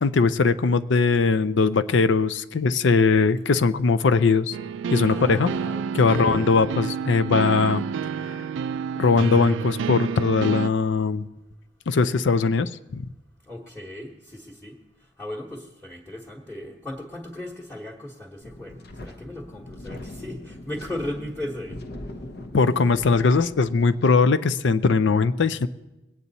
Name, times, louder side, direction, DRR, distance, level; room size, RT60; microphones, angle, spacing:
voice 1, 0.0-4.6 4.9-5.5 5.9-7.8 9.0-11.3 11.9-13.1 22.5-25.7, left 4 dB, 70° left, 12 dB, 0.5 m, -20 dB
sound 1, 4.5-10.7, right 6 dB, 75° right, 0.3 m, -29 dB
voice 2, 5.1-6.5 13.5-14.8 15.2-21.8, left 1 dB, 5° left, -3 dB, 1.2 m, -36 dB
Wind, 18.4-24.0, left 1 dB, 55° left, 0.9 m, -40 dB
21.0 x 8.8 x 4.1 m, 1.0 s
head